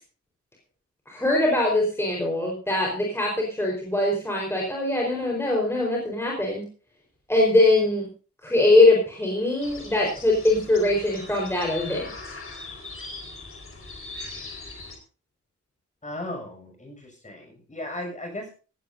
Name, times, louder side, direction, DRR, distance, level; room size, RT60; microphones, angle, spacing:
voice 1, 1.1-6.6 7.3-8.1 8.4-12.1, left 2 dB, 10° left, -2 dB, 4.5 m, -22 dB
sound 1, 9.6-15.0, left 2 dB, 45° left, 4.5 m, -40 dB
voice 2, 16.0-18.5, left 1 dB, 25° left, 3 dB, 6.7 m, -36 dB
17.5 x 16.5 x 2.7 m, 0.36 s
wide cardioid pair, 170°, 29 cm